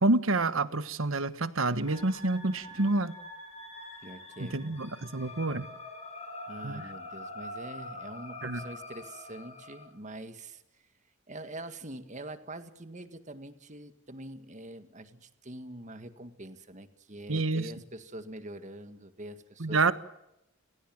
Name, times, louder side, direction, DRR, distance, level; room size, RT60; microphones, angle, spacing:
voice 1, 0.0-3.1 4.4-5.7 6.6-6.8 8.4-8.6 17.3-17.7 19.6-19.9, right 2 dB, 80° right, 13 dB, 1.4 m, -28 dB
sound 1, 1.7-9.9, left 2 dB, 30° left, 5.9 m, -45 dB
voice 2, 4.0-4.8 6.5-10.6 11.3-19.9, right 1 dB, 35° right, 10 dB, 1.9 m, -44 dB
29.0 x 18.5 x 7.8 m, 0.87 s
head